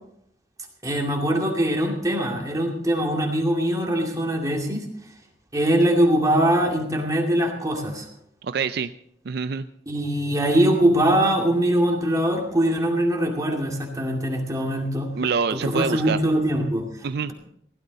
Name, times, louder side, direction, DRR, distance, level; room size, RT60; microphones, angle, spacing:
voice 1, 0.8-4.9 5.5-8.1 9.9-15.1 15.5-16.9, right 1 dB, 20° right, 0 dB, 2.3 m, -22 dB
voice 2, 8.4-8.9 9.3-9.7 15.2-16.2 17.0-17.3, right 5 dB, 60° right, 11 dB, 0.4 m, -25 dB
16.5 x 12.5 x 4.0 m, 0.70 s
head